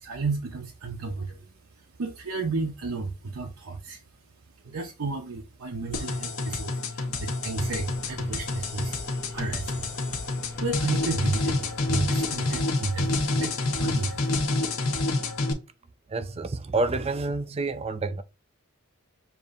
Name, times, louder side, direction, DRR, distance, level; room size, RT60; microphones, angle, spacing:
voice 1, 0.0-1.4 2.0-4.0 4.6-9.0 9.3-9.9 10.6-14.4, right 3 dB, 80° right, 0.7 m, -32 dB
sound 1, 5.9-15.5, left 2 dB, 75° left, 1.0 m, -28 dB
sound 2, 7.6-12.6, left 1 dB, 10° left, 0.8 m, -47 dB
voice 2, 16.1-18.2, right 3 dB, 30° right, 0.4 m, -28 dB
6.9 x 2.6 x 2.5 m
head